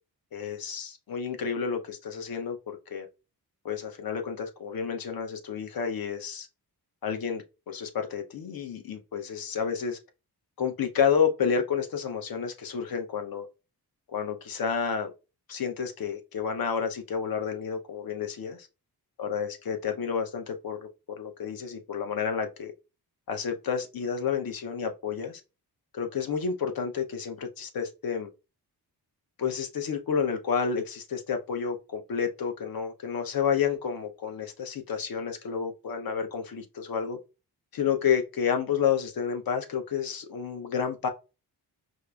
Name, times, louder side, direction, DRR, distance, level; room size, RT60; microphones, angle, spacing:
voice 1, 0.3-3.1 3.6-6.5 7.0-10.0 10.6-13.5 14.1-15.1 15.5-18.7 19.2-22.7 23.3-25.4 25.9-28.3 29.4-37.2 37.7-41.1, left 7 dB, 60° left, 0.7 m, -30 dB
4.6 x 2.5 x 2.3 m
wide cardioid pair, 180°, 39 cm